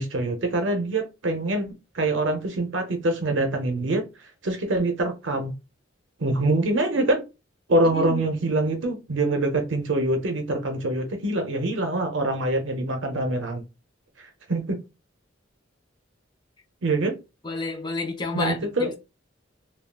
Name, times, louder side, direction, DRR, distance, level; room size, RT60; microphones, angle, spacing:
voice 1, 0.0-4.0 4.4-5.5 6.2-7.2 7.7-13.6 14.2-14.8 16.8-17.2 18.3-18.9, right 2 dB, 70° right, 0.6 m, -25 dB
voice 2, 7.8-8.2 17.4-19.0, left 3 dB, 25° left, 0.7 m, -30 dB
3.5 x 2.3 x 2.2 m
head